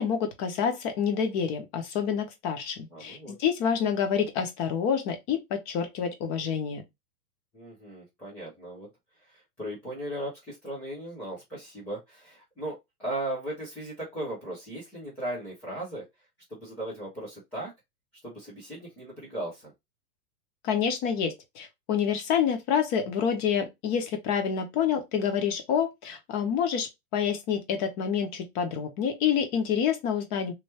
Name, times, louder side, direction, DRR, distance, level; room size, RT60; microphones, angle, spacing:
voice 1, 0.0-6.8 20.6-30.5, left 7 dB, 30° left, 1.0 m, -28 dB
voice 2, 2.9-3.3 6.3-6.5 7.5-8.9 9.3-16.0 16.5-17.7 18.2-19.7, right 1 dB, 5° left, 0.3 m, -37 dB
3.3 x 2.9 x 2.8 m
hypercardioid pair, 145°, 46 cm